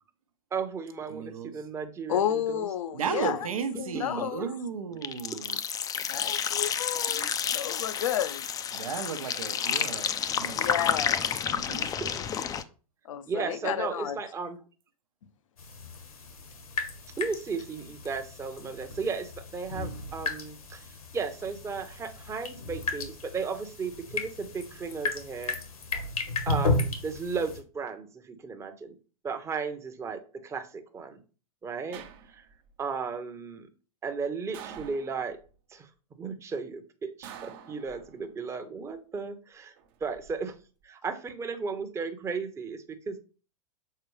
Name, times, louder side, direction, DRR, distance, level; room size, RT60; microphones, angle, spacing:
voice 1, 0.5-2.2 2.5-2.6 3.9-4.5 7.1-7.3 12.0-12.2 13.3-14.6 17.2-20.8 21.1-25.6 26.5-28.9 29.2-31.2 31.6-32.0 32.8-33.7 34.0-35.4 35.7-35.9 36.2-39.7 40.0-40.5 40.8-42.8 43.1-43.2, right 5 dB, 15° right, 0.8 m, -35 dB
voice 2, 1.1-1.5 2.9-5.6 8.7-10.6 11.5-11.9, right 7 dB, 70° right, 0.9 m, -35 dB
voice 3, 2.1-3.5 3.8-4.5 6.1-8.5 10.6-11.3 13.0-14.2, left 10 dB, 60° left, 0.7 m, -31 dB
sound 1, 5.0-12.6, left 8 dB, 20° left, 0.5 m, -30 dB
sound 2, 15.6-27.6, left 3 dB, 80° left, 1.5 m, -34 dB
sound 3, 31.9-32.7 34.5-35.5 37.2-38.4 39.8-40.3, right 8 dB, 45° right, 0.9 m, -47 dB
6.7 x 4.3 x 3.2 m
figure-of-eight pair, 105°, 18 cm